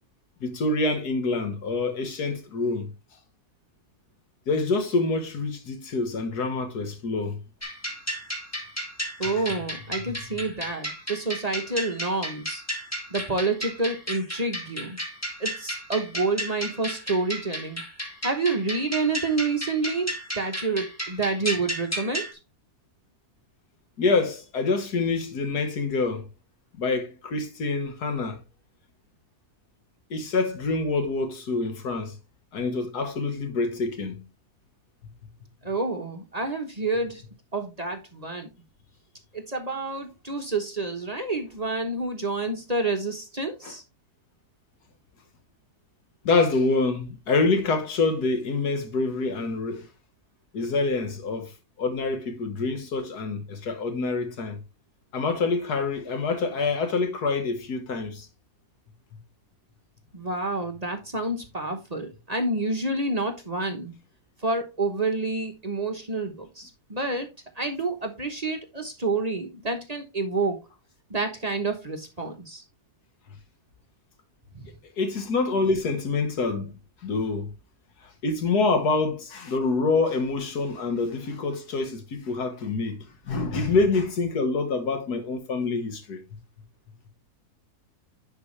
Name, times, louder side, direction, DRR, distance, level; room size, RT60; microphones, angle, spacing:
voice 1, 0.4-2.9 4.5-7.4 9.2-9.4 24.0-26.3 26.8-28.4 30.1-32.2 32.5-34.2 43.6-43.7 46.3-49.9 50.5-51.5 51.8-54.6 55.1-58.3 75.0-76.7 77.0-77.5 78.2-86.2, left 3 dB, 85° left, 1.9 m, -26 dB
sound 1, 7.6-22.3, equal, 10° left, 1.5 m, -33 dB
voice 2, 9.2-12.6 13.1-15.0 15.4-17.8 18.2-22.3 35.6-37.2 37.5-38.5 39.3-43.8 60.1-63.9 64.4-67.3 67.6-70.6 71.1-72.6 74.5-74.7, right 3 dB, 30° right, 1.0 m, -28 dB
10.0 x 4.7 x 3.2 m
omnidirectional pair, 1.6 m